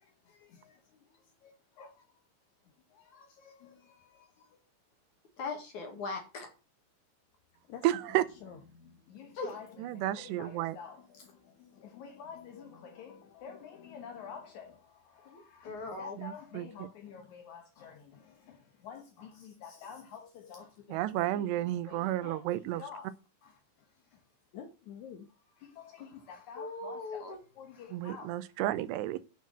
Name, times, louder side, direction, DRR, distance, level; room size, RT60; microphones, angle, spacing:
voice 1, 0.0-2.0 2.9-4.6 7.7-7.9 8.4-22.5 22.7-23.1 23.4-23.6 24.1-24.2 24.5-28.4, left 6 dB, 70° left, 1.8 m, -50 dB
voice 2, 5.4-6.5 9.4-9.5 15.3-16.2 26.0-26.1 26.6-27.4, left 3 dB, 50° left, 2.9 m, -39 dB
voice 3, 7.8-8.3 9.8-10.8 16.2-16.9 20.9-22.8 27.9-29.2, right 14 dB, 80° right, 2.8 m, -32 dB
9.4 x 5.8 x 7.4 m
omnidirectional pair, 5.0 m